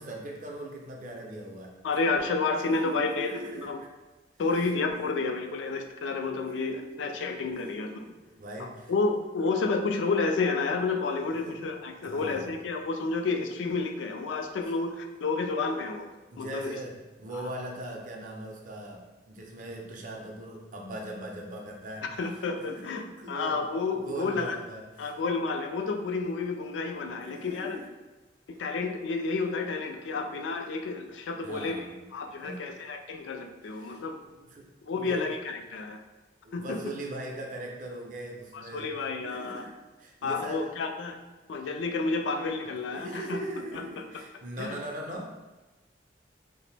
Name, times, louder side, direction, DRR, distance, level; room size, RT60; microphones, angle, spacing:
voice 1, 0.0-2.1 2.6-3.9 4.9-5.3 6.4-8.9 11.3-11.7 12.0-12.5 14.7-14.8 16.3-22.1 22.5-23.7 23.9-25.1 27.2-27.9 31.4-32.1 32.4-32.9 33.6-35.3 36.4-39.0 39.2-40.8 42.8-45.4, right 1 dB, 45° right, 1 dB, 0.4 m, -41 dB
voice 2, 1.8-3.3 3.6-3.8 4.4-7.9 8.6-16.1 16.4-16.7 17.3-17.5 22.2-24.6 25.0-27.8 28.5-31.8 32.1-34.2 34.9-36.0 36.5-36.8 38.5-39.7 40.2-41.2 41.5-43.4 43.7-43.8 44.6-44.8, left 3 dB, 85° left, 5 dB, 0.3 m, -30 dB
2.8 x 2.0 x 3.2 m, 1.2 s
head